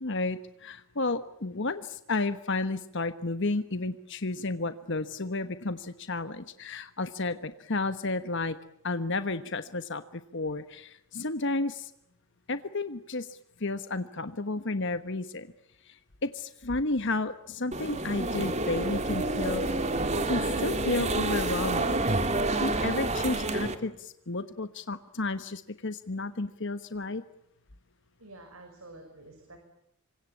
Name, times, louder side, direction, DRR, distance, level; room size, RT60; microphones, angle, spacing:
voice 1, 0.0-8.6 8.8-11.9 12.5-15.5 15.8-19.7 20.3-22.0 22.6-27.2, left 2 dB, 55° left, 11 dB, 1.3 m, -32 dB
sound 1, 17.7-23.8, right 2 dB, 30° right, 2.5 m, -28 dB
voice 2, 28.2-29.6, right 2 dB, 80° right, 5 dB, 6.1 m, -49 dB
27.5 x 25.0 x 8.6 m, 0.76 s
head